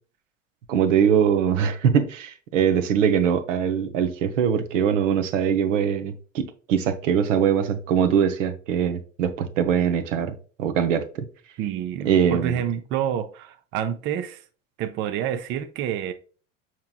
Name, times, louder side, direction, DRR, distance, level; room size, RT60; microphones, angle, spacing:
voice 1, 0.7-11.1 12.0-12.6, right 8 dB, 70° right, 0.7 m, -22 dB
voice 2, 11.6-14.4 14.8-16.1, right 9 dB, 30° right, 0.4 m, -28 dB
5.6 x 2.9 x 2.3 m
figure-of-eight pair, 75°, 39 cm